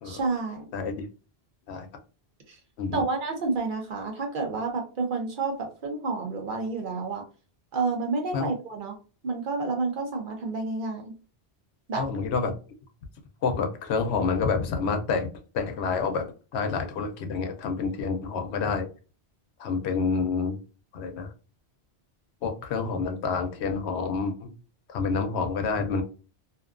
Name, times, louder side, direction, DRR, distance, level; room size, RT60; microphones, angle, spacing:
voice 1, 0.0-0.6 2.5-2.6 2.9-7.2 7.7-9.0 9.2-11.1 11.9-12.0, right 3 dB, 55° right, 3 dB, 0.8 m, -29 dB
voice 2, 0.7-1.0 1.7-1.9 2.8-3.0 8.3-8.5 11.9-12.6 13.4-16.2 16.5-18.9 19.6-20.6 20.9-21.3 22.4-24.5 24.9-26.0, left 5 dB, 90° left, 6 dB, 0.9 m, -28 dB
2.6 x 2.2 x 2.4 m, 0.35 s
omnidirectional pair, 1.1 m